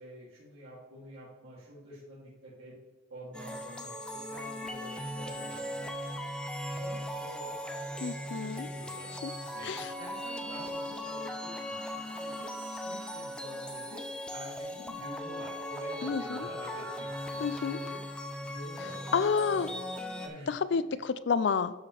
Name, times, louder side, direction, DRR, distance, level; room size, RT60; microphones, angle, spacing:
voice 1, 0.0-2.7 3.1-5.9 6.7-9.2 9.5-12.5 12.8-18.0 18.4-19.2 19.5-19.8 20.2-20.5 20.9-21.0, equal, 85° right, -10 dB, 2.8 m, -48 dB
sound 1, 3.3-20.3, equal, 5° left, 0.6 m, -38 dB
voice 2, 8.0-8.7 9.2-9.3 9.6-9.9 16.0-16.5 17.4-17.8 19.1-19.7 20.5-21.7, left 5 dB, 60° left, 15 dB, 0.4 m, -29 dB
12.5 x 5.0 x 3.4 m, 1.2 s
head